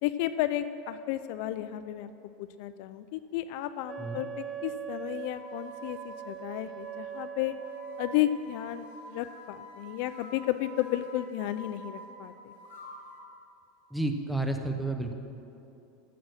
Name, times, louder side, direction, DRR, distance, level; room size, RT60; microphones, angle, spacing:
voice 1, 0.0-2.1 2.4-7.5 8.0-12.5, left 13 dB, 60° left, 12 dB, 0.4 m, -33 dB
Wind instrument woodwind instrument, 3.8-8.3, right 10 dB, 20° right, 0.4 m, -41 dB
sound 1, 5.1-13.3, right 1 dB, 85° left, 3.3 m, -48 dB
voice 2, 13.9-15.1, right 2 dB, ahead, 5 dB, 0.8 m, -31 dB
14.5 x 6.2 x 6.3 m, 2.8 s
supercardioid pair, 145°, 0 cm